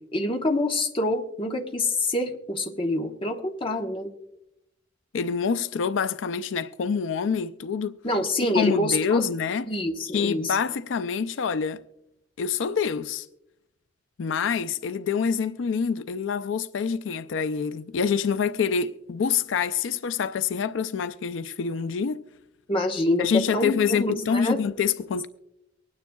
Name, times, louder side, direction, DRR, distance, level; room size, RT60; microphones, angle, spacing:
voice 1, 0.1-4.1 8.0-9.3 9.6-10.6 22.7-24.6, left 1 dB, 30° left, 1.0 m, -26 dB
voice 2, 5.1-7.9 8.5-9.7 10.1-11.8 12.4-13.3 14.2-22.2 23.2-25.3, left 6 dB, 90° left, 0.4 m, -26 dB
24.0 x 9.6 x 2.3 m
head